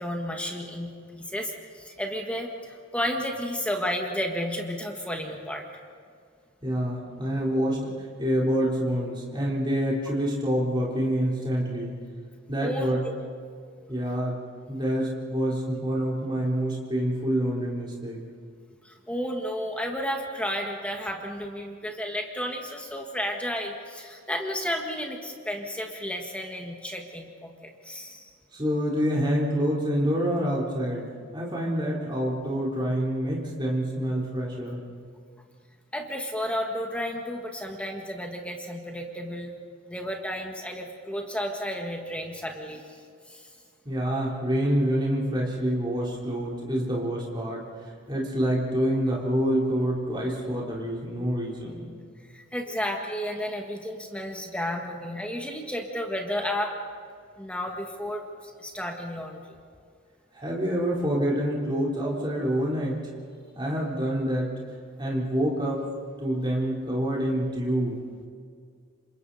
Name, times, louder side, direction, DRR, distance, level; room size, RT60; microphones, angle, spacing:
voice 1, 0.0-5.6 12.6-13.1 18.8-28.3 35.9-39.5 39.9-43.0 43.3-43.5 52.3-56.7 57.4-59.6, equal, 5° left, 1 dB, 1.7 m, -32 dB
voice 2, 6.6-7.9 8.2-12.0 12.5-13.0 13.9-14.4 14.7-18.2 28.5-34.8 43.9-47.6 48.1-51.8 60.3-63.0 63.5-64.5 65.0-65.9 66.2-68.0, equal, 20° right, -4 dB, 4.0 m, -27 dB
29.5 x 26.5 x 4.3 m, 2.2 s
head